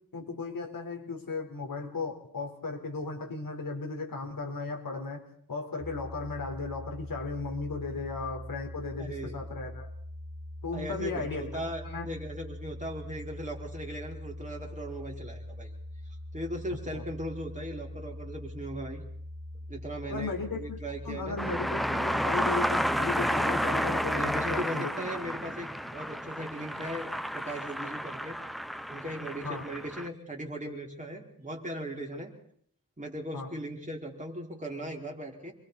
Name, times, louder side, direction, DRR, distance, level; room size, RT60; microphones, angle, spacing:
voice 1, 0.1-9.9 10.6-11.4 11.8-12.1 16.9-17.0 20.1-20.8 21.0-24.9 29.4-29.6 33.3-33.5, left 3 dB, 70° left, 2 dB, 4.2 m, -36 dB
sound 1, 5.8-24.5, left 1 dB, 20° left, 5.7 m, -43 dB
voice 2, 9.0-9.4 10.7-15.7 16.0-19.0 19.7-21.4 24.2-28.4 28.9-32.3 33.0-35.5, right 1 dB, 20° right, -1 dB, 4.9 m, -38 dB
sound 2, 21.4-30.1, equal, ahead, 0.8 m, -31 dB
28.5 x 22.5 x 4.2 m, 0.63 s
wide cardioid pair, 90°, 36 cm